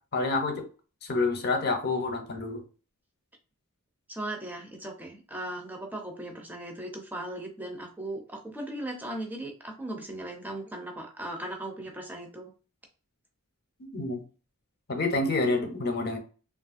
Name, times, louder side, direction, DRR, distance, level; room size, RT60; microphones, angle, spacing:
voice 1, 0.1-0.6 1.0-2.6 13.9-14.2 14.9-16.2, left 3 dB, 45° left, 5 dB, 0.7 m, -28 dB
voice 2, 4.1-12.5, right 1 dB, 10° right, 1 dB, 0.5 m, -38 dB
3.0 x 2.4 x 2.5 m, 0.36 s
head